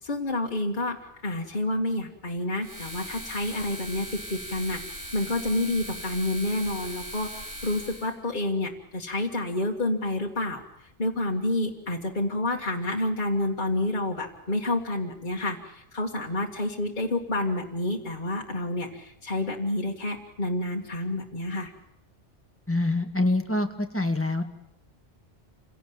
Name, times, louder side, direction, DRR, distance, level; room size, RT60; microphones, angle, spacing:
voice 1, 0.0-10.6 11.0-21.7, left 1 dB, 40° left, 0 dB, 2.1 m, -29 dB
sound 1, 2.6-8.1, equal, 55° right, 6.7 m, -39 dB
voice 2, 22.7-24.4, left 2 dB, 10° left, 5 dB, 2.0 m, -25 dB
27.5 x 17.0 x 8.8 m, 0.81 s
omnidirectional pair, 1.2 m